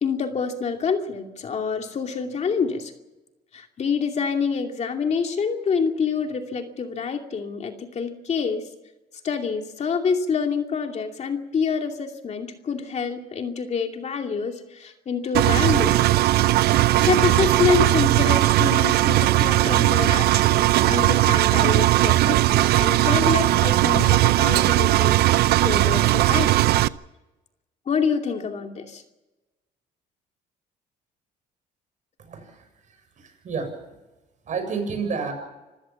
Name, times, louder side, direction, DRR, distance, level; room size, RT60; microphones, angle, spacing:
voice 1, 0.0-2.9 3.5-8.7 9.2-16.3 16.7-26.5 27.9-29.0, left 5 dB, 40° left, 4 dB, 2.6 m, -27 dB
Engine, 15.3-26.9, right 16 dB, 70° right, 0.6 m, -18 dB
voice 2, 32.2-33.7 34.5-35.3, right 5 dB, 45° right, 6 dB, 7.2 m, -31 dB
26.5 x 15.5 x 7.2 m, 1.1 s
cardioid pair, 110°, 17 cm